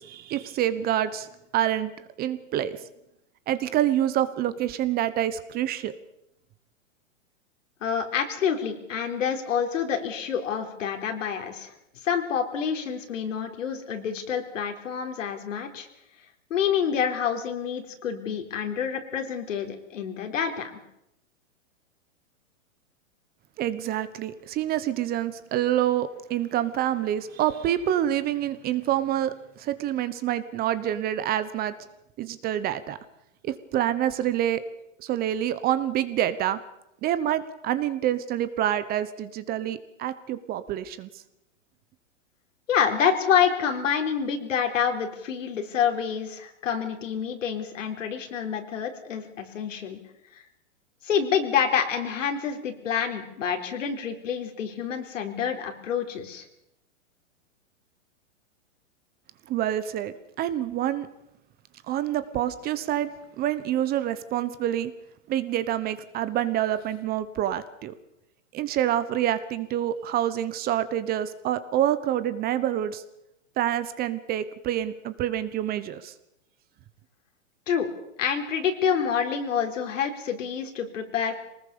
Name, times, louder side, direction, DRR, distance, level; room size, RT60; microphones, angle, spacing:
voice 1, 0.0-2.8 3.5-5.9 23.6-31.7 32.2-33.0 33.4-34.6 35.0-36.6 37.0-41.1 59.5-61.1 61.9-63.1 63.4-64.9 65.3-67.9 68.5-73.0 73.6-76.1, right 11 dB, 25° right, 13 dB, 1.1 m, -27 dB
voice 2, 7.8-11.7 12.0-15.9 16.5-20.8 42.7-50.0 50.3-50.4 51.0-56.5 77.7-77.9 78.2-81.4, left 7 dB, 75° left, 5 dB, 4.1 m, -27 dB
23.5 x 19.5 x 7.0 m, 0.83 s
hypercardioid pair, 140°, 38 cm